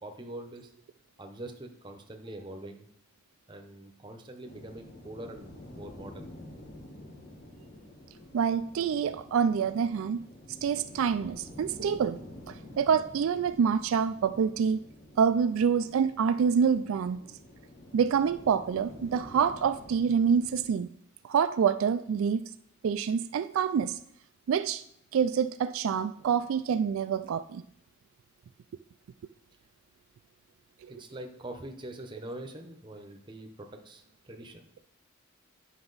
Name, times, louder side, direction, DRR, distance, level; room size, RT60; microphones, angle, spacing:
voice 1, 0.0-0.7 1.2-2.9 3.5-6.3 30.9-34.6, right 1 dB, 20° right, 4 dB, 0.8 m, -44 dB
sound 1, 4.4-20.7, left 1 dB, 45° left, 1.5 m, -49 dB
voice 2, 8.3-10.2 10.6-12.2 12.5-14.8 15.2-17.2 17.9-20.9 21.2-22.4 22.8-24.0 24.5-24.8 25.1-27.6 30.8-30.9, right 7 dB, 70° right, 12 dB, 0.3 m, -26 dB
9.7 x 5.8 x 4.0 m, 0.72 s
head